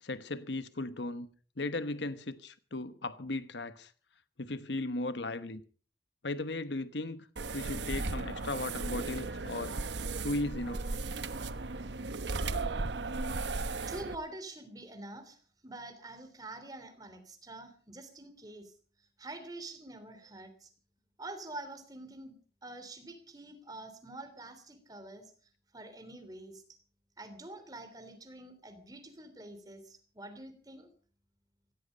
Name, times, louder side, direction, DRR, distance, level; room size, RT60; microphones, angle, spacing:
voice 1, 0.0-1.3 1.6-3.9 4.4-5.6 6.2-7.3 7.5-9.7 10.2-10.8, left 2 dB, 85° left, 1.1 m, -36 dB
sound 1, 7.4-14.2, right 3 dB, 85° right, 1.1 m, -36 dB
voice 2, 13.9-18.7 19.2-20.7 21.2-22.3 22.6-25.3 25.7-26.6 27.2-30.9, right 2 dB, 20° right, 3.1 m, -46 dB
16.5 x 16.0 x 5.2 m
head